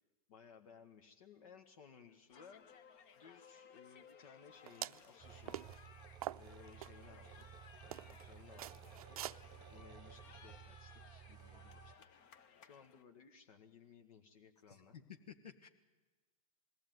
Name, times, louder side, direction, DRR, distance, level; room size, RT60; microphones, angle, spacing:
voice 1, 0.3-2.6 3.1-5.6 6.3-7.5 7.8-9.2 9.7-12.0 12.6-15.0, left 6 dB, 65° left, 4 dB, 1.7 m, -60 dB
sound 1, 2.3-13.0, left 7 dB, 40° left, 1.4 m, -61 dB
sound 2, 4.7-5.1 5.5-5.8 6.2-6.9 7.4-7.5 7.9-8.2 8.6-9.4, right 12 dB, 70° right, 0.6 m, -44 dB
sound 3, 5.2-12.0, right 10 dB, 20° right, 0.8 m, -56 dB
voice 2, 14.7-15.7, left 8 dB, 85° left, 5 dB, 1.8 m, -54 dB
21.0 x 15.5 x 9.4 m, 1.2 s
hypercardioid pair, 125°, 20 cm